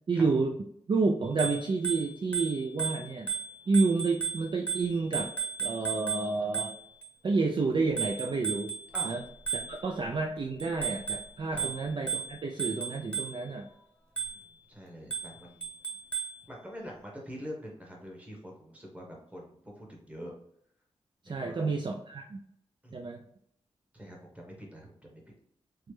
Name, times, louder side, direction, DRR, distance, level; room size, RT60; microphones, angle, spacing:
voice 1, 0.1-0.5 0.9-3.3 3.7-5.3 5.6-6.7 7.2-8.7 9.0-9.2 9.7-13.7 21.2-22.4 22.9-23.2, right 3 dB, 45° right, 1 dB, 0.4 m, -29 dB
Bicycle bell, 1.2-7.1 8.0-10.1 10.6-13.6 14.2-14.6 15.1-16.4, right 7 dB, 10° left, 0.9 m, -36 dB
voice 2, 14.2-15.7 16.5-20.3 21.3-21.7 22.8-22.9 23.9-25.2, equal, 10° right, -2 dB, 1.1 m, -45 dB
3.1 x 2.1 x 3.2 m, 0.69 s
cardioid pair, 50°, 11 cm